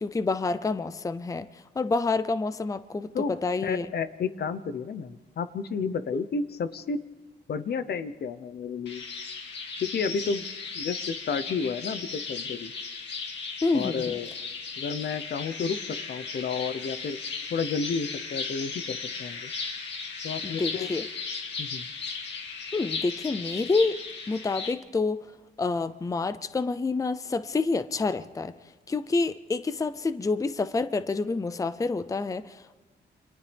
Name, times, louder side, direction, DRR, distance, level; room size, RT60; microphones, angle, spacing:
voice 1, 0.0-3.9 13.6-14.2 20.4-21.1 22.7-24.0 24.3-25.3 25.6-28.5 28.9-32.8, left 3 dB, 20° left, 13 dB, 0.6 m, -28 dB
voice 2, 3.6-7.0 7.5-9.0 9.8-10.5 10.7-12.7 13.7-14.3 14.8-17.2 17.5-19.5 20.2-20.9 21.6-21.9, left 5 dB, 65° left, 12 dB, 1.0 m, -31 dB
sound 1, 8.9-24.7, left 4 dB, 80° left, 2.2 m, -36 dB
28.5 x 26.0 x 3.5 m, 1.3 s
wide cardioid pair, 125°, 18 cm